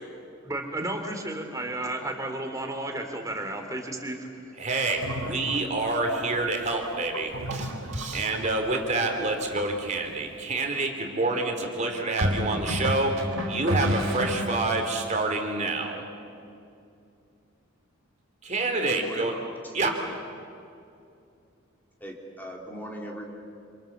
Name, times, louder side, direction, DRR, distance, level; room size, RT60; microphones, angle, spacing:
voice 1, 0.4-4.2, right 1 dB, 15° right, 4 dB, 3.1 m, -32 dB
voice 2, 4.5-16.0 18.4-19.3 19.7-20.0, right 2 dB, 35° right, 3 dB, 2.9 m, -28 dB
sound 1, 4.8-10.1, right 2 dB, 70° right, 1.9 m, -37 dB
sound 2, 9.5-9.8 12.2-14.8, equal, 90° right, 4.1 m, -29 dB
voice 3, 18.9-19.4 19.8-20.0 22.0-23.2, equal, 10° left, 0 dB, 2.5 m, -38 dB
28.0 x 27.0 x 7.3 m, 2.5 s
head